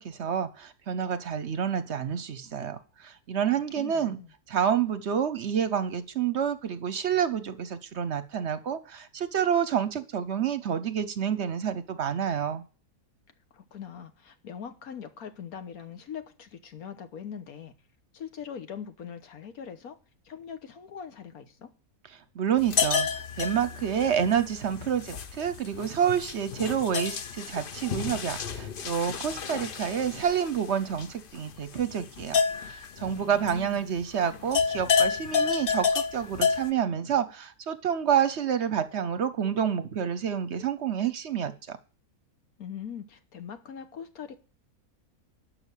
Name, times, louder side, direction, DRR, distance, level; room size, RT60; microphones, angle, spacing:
voice 1, 0.0-4.2 4.5-12.6 22.4-41.8, right 8 dB, 55° right, 0.9 m, -28 dB
voice 2, 3.7-4.3 13.5-17.7 18.1-20.0 20.2-21.7 33.1-34.0 42.6-44.4, left 8 dB, 80° left, 1.6 m, -42 dB
sound 1, 22.6-34.0 34.3-36.7, left 6 dB, 50° left, 0.7 m, -30 dB
12.5 x 5.7 x 8.2 m
omnidirectional pair, 1.5 m